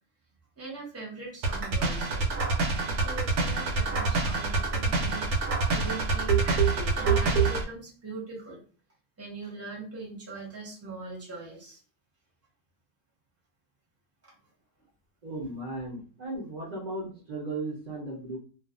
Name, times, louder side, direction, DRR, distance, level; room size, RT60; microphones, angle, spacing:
voice 1, 0.6-2.3 2.6-8.6 9.2-11.8 14.2-14.3, right 3 dB, 15° right, -3 dB, 0.7 m, -41 dB
sound 1, 1.4-7.7, right 4 dB, 90° right, 1.1 m, -26 dB
voice 2, 15.2-18.4, right 2 dB, 50° right, -3 dB, 0.5 m, -36 dB
2.4 x 2.4 x 2.4 m, 0.40 s
omnidirectional pair, 1.5 m